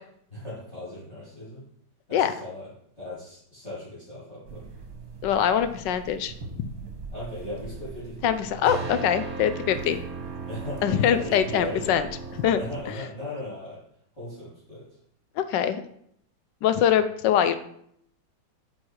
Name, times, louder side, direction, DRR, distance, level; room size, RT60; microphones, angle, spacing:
voice 1, 0.3-1.6 2.1-2.7 3.0-4.6 7.1-8.5 10.5-12.0 12.5-13.8 14.2-14.9, left 1 dB, 35° left, -9 dB, 3.7 m, -37 dB
sound 1, 4.4-12.8, right 4 dB, 55° right, 1.8 m, -38 dB
voice 2, 5.2-6.3 8.2-10.0 10.8-12.1 12.4-12.6 15.4-15.8 16.6-17.6, left 9 dB, 75° left, 11 dB, 1.3 m, -23 dB
9.4 x 4.3 x 4.7 m, 0.69 s
omnidirectional pair, 2.0 m